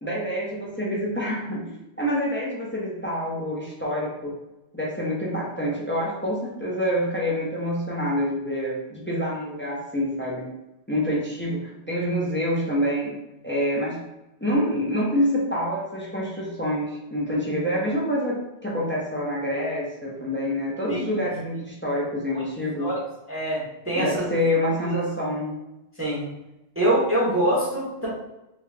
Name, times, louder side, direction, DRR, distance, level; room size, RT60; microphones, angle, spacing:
voice 1, 0.0-4.3 4.7-10.5 10.9-13.2 13.4-14.0 14.4-22.9 24.0-25.6, equal, 15° left, -5 dB, 0.5 m, -27 dB
voice 2, 23.3-24.2 24.9-25.0 26.0-26.3 26.7-28.1, right 1 dB, 10° right, -7 dB, 0.9 m, -24 dB
3.7 x 2.3 x 3.3 m, 0.96 s
omnidirectional pair, 1.3 m